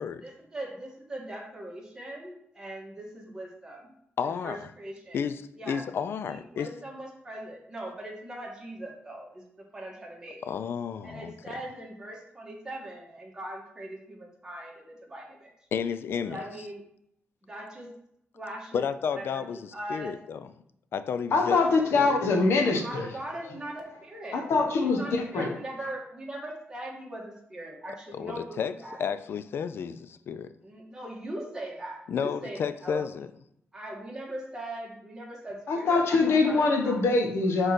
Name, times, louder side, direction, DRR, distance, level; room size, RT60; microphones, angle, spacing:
voice 1, 0.0-3.9 4.2-5.2 5.6-5.9 6.2-10.4 11.0-15.5 16.2-16.8 17.4-17.9 18.3-18.8 19.2-20.1 21.5-21.8 22.5-24.5 24.8-29.0 30.6-33.0 33.7-37.1, right 1 dB, 15° right, -2 dB, 1.8 m, -40 dB
voice 2, 4.2-4.7 5.1-6.7 10.4-11.3 15.7-16.4 18.7-20.5 20.9-21.6 21.9-22.2 28.1-28.7 29.0-30.5 32.1-33.3, left 7 dB, 65° left, 12 dB, 0.4 m, -32 dB
voice 3, 21.3-23.1 24.3-25.5 35.7-37.7, left 3 dB, 80° left, 3 dB, 1.2 m, -24 dB
5.3 x 3.8 x 5.9 m, 0.75 s
wide cardioid pair, 125°, 4 cm